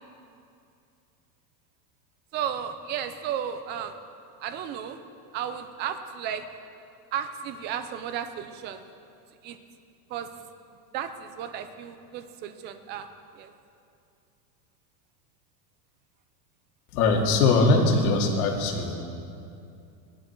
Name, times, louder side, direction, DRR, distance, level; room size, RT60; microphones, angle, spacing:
voice 1, 2.3-4.0 4.4-5.0 5.3-6.4 7.1-8.8 9.4-9.6 10.1-10.3 10.9-13.1 13.4-13.5, right 9 dB, 20° right, 9 dB, 0.5 m, -33 dB
voice 2, 16.9-19.0, left 3 dB, 60° left, 1 dB, 2.5 m, -21 dB
18.0 x 11.5 x 4.6 m, 2.5 s
supercardioid pair, 160°, 48 cm